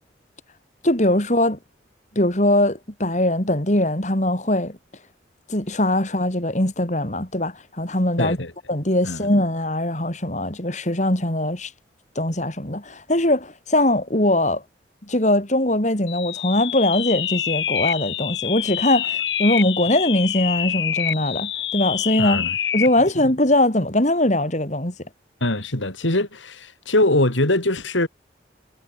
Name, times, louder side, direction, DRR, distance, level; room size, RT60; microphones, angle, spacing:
voice 1, 0.8-1.6 2.2-4.8 5.5-8.4 8.7-11.7 12.2-14.6 15.1-22.5 22.7-24.9, left 1 dB, 40° left, 3.8 m, -21 dB
voice 2, 8.2-8.5 9.0-9.3 22.2-22.5 25.4-28.1, left 1 dB, 85° left, 4.2 m, -22 dB
sound 1, 16.1-23.0, left 10 dB, 70° left, 2.7 m, -26 dB
head